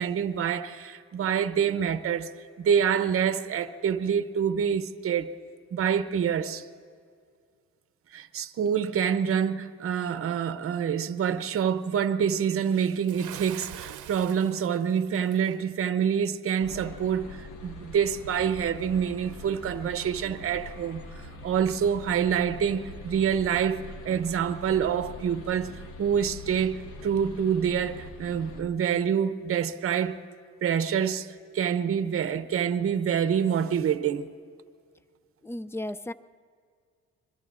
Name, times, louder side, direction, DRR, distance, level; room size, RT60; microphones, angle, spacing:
voice 1, 0.0-2.3 2.6-5.3 5.7-6.7 8.1-25.7 26.0-30.2 30.6-34.3, right 8 dB, 50° right, 0.7 m, -27 dB
Bathtub (filling or washing) / Splash splatter, 13.1-15.6, right 11 dB, 85° right, 0.7 m, -43 dB
sound 1, 16.6-28.6, left 1 dB, 80° left, 1.4 m, -43 dB
voice 2, 35.4-36.1, left 1 dB, 10° left, 0.3 m, -34 dB
26.0 x 22.5 x 2.5 m
cardioid pair, 90°, 30 cm